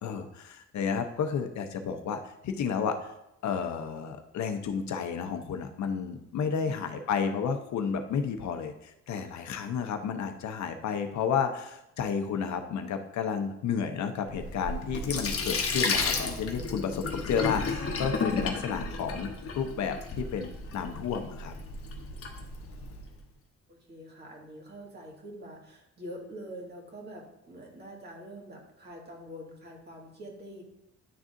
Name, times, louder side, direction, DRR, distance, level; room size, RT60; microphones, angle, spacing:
voice 1, 0.0-3.1 3.4-21.5, left 6 dB, 65° left, 6 dB, 0.7 m, -32 dB
voice 2, 6.6-7.0 23.7-30.6, equal, 35° right, -1 dB, 1.9 m, -45 dB
Sink (filling or washing), 14.3-23.1, left 4 dB, 50° left, 1.0 m, -33 dB
10.5 x 3.6 x 2.6 m, 0.83 s
cardioid pair, 90°, 30 cm